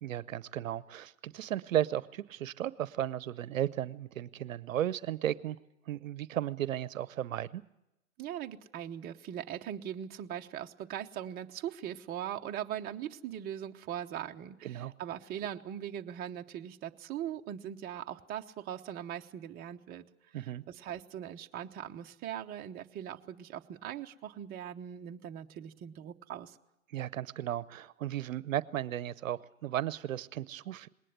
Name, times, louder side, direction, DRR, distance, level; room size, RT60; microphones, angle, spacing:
voice 1, 0.0-5.6 5.9-7.6 14.6-14.9 20.3-20.6 26.9-30.9, right 11 dB, 70° right, 19 dB, 0.8 m, -35 dB
voice 2, 8.2-20.1 20.4-26.6, right 10 dB, 20° right, 4 dB, 0.8 m, -40 dB
20.0 x 19.0 x 8.0 m, 0.90 s
hypercardioid pair, 120°, 41 cm